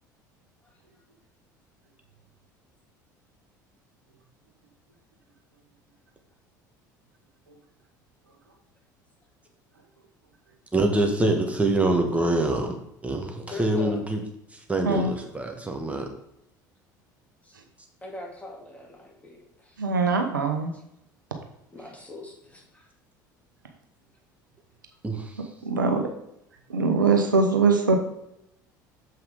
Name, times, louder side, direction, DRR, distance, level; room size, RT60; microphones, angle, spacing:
voice 1, 10.7-12.7 13.0-14.2 14.5-16.1 25.0-25.4, right 2 dB, 15° right, 3 dB, 1.7 m, -25 dB
voice 2, 13.4-14.0 17.4-17.5 18.0-19.8 21.7-22.9 25.6-25.7, left 2 dB, 15° left, -1 dB, 2.6 m, -41 dB
voice 3, 19.8-20.7 25.6-26.1 26.7-28.0, right 4 dB, 90° right, 4 dB, 0.9 m, -22 dB
7.5 x 5.7 x 3.6 m, 0.80 s
hypercardioid pair, 70°, 10 cm